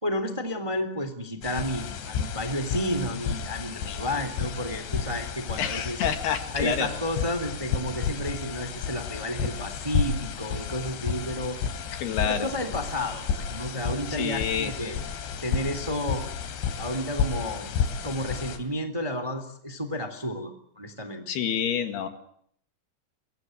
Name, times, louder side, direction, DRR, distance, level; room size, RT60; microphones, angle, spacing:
voice 1, 0.0-6.0 6.5-11.6 12.2-15.0 15.4-16.2 16.8-17.7 18.0-21.3, equal, 10° right, 9 dB, 2.1 m, -31 dB
sound 1, 1.4-18.6, left 7 dB, 90° left, 4.9 m, -32 dB
voice 2, 5.6-6.9 11.9-12.5 14.1-14.9 21.3-22.1, left 8 dB, 70° left, 8 dB, 3.9 m, -28 dB
27.5 x 23.5 x 7.9 m, 0.67 s
omnidirectional pair, 5.1 m